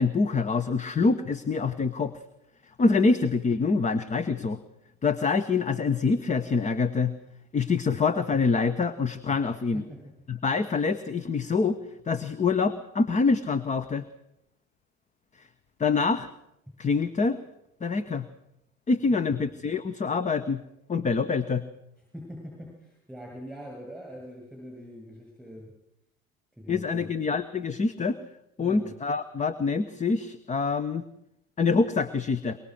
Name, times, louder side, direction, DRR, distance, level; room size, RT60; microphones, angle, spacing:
voice 1, 0.0-2.2 2.8-4.6 5.0-7.1 7.5-9.8 10.3-11.8 12.1-14.0 15.8-16.3 16.8-17.4 17.8-18.3 18.9-20.6 20.9-21.6 26.7-28.2 28.6-31.0 31.6-32.6, left 4 dB, 15° left, 14 dB, 1.0 m, -25 dB
voice 2, 19.1-19.5 22.1-25.7 26.6-27.1 28.6-28.9, equal, ahead, -1 dB, 7.6 m, -43 dB
23.5 x 22.5 x 6.5 m, 0.82 s
figure-of-eight pair, 75°, 41 cm